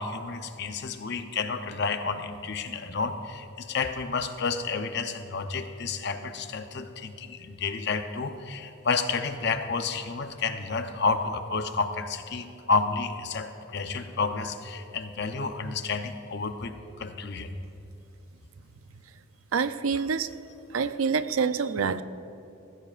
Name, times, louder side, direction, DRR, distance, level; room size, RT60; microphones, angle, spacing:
voice 1, 0.0-16.7 17.0-17.5, left 4 dB, 55° left, 8 dB, 0.8 m, -30 dB
voice 2, 19.5-20.3 20.7-22.0, right 5 dB, 80° right, 12 dB, 0.5 m, -26 dB
19.0 x 15.0 x 2.5 m, 2.9 s
head